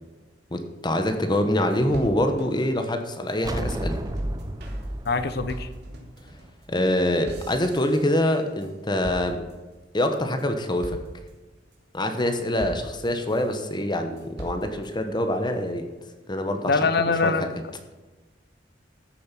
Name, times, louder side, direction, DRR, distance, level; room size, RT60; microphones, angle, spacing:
voice 1, 0.5-4.0 6.7-9.4 9.9-11.0 11.9-15.8 16.3-16.7 17.2-17.3, left 1 dB, 25° left, 6 dB, 1.0 m, -25 dB
sound 1, 1.1-1.2 1.4-1.5 1.7-3.4 3.7-8.7 9.0-9.7 10.2-10.5 10.8-11.3 11.7-12.2 12.6-13.5 14.0-14.9, right 1 dB, 65° right, 2.6 m, -42 dB
sound 2, 3.4-6.9, right 1 dB, 20° right, 0.8 m, -32 dB
voice 2, 5.1-5.7 16.7-17.5, left 4 dB, 60° left, 11 dB, 0.9 m, -23 dB
14.0 x 7.3 x 6.0 m, 1.2 s
head